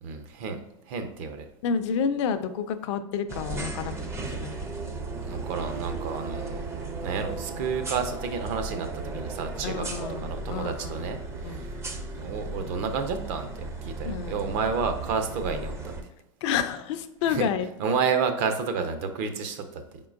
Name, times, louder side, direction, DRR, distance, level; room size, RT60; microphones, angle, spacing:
voice 1, 0.0-0.6 0.9-1.5 5.2-6.6 7.0-11.8 12.2-15.9 17.3-17.5 17.8-20.0, right 5 dB, 55° right, 8 dB, 0.7 m, -30 dB
voice 2, 1.6-4.6 9.6-10.2 10.5-10.9 11.4-11.7 14.0-14.4 16.4-17.7, left 7 dB, 60° left, 10 dB, 0.4 m, -29 dB
sound 1, 3.3-16.0, right 3 dB, 15° right, 0.5 m, -35 dB
4.3 x 3.7 x 2.5 m, 0.91 s
hypercardioid pair, 115°, 17 cm